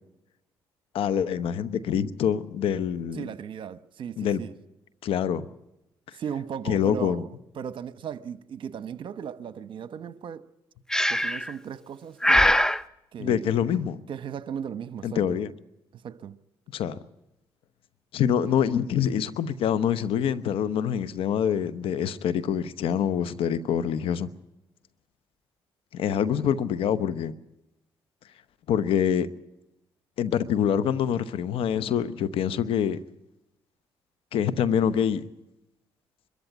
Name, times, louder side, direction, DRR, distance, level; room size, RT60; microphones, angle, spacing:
voice 1, 0.9-3.2 4.2-4.4 5.0-5.5 6.7-7.2 13.2-14.0 15.0-15.5 16.7-17.0 18.1-24.3 25.9-27.3 28.7-29.3 30.2-33.0 34.3-35.3, left 8 dB, 75° left, 1.0 m, -25 dB
voice 2, 3.1-4.5 6.1-7.3 7.5-10.4 11.1-12.6 13.1-13.5 14.1-15.4 15.9-16.4, right 8 dB, 60° right, 1.0 m, -37 dB
Breathing, 10.9-11.5 12.2-12.8, equal, 5° left, 0.7 m, -21 dB
23.0 x 14.0 x 9.2 m
supercardioid pair, 70°, 9 cm